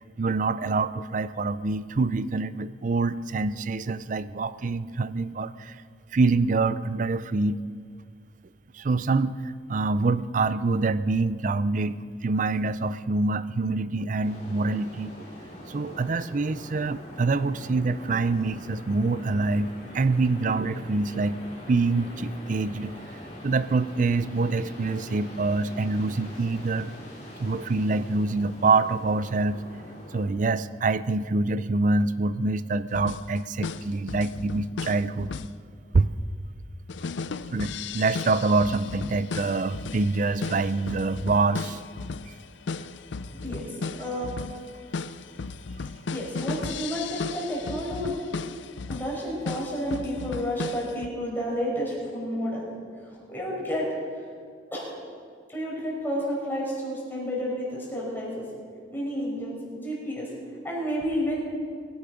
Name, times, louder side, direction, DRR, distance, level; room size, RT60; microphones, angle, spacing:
voice 1, 0.2-5.8 6.1-7.6 8.7-15.1 15.7-21.4 21.7-23.0 23.4-26.9 27.4-29.6 30.1-35.3 35.9-36.1 37.5-41.8, right 3 dB, 45° right, 15 dB, 0.4 m, -25 dB
sound 1, 14.2-30.3, equal, 40° left, 3.5 m, -43 dB
sound 2, 32.9-35.6 36.9-51.1, left 4 dB, 75° left, 0.5 m, -35 dB
voice 2, 43.4-44.3 46.1-48.1 48.9-52.6 53.0-53.9 54.7-54.9 55.5-58.4 58.9-60.3 60.6-61.4, equal, 10° left, -4 dB, 5.0 m, -30 dB
22.5 x 10.0 x 5.1 m, 2.1 s
head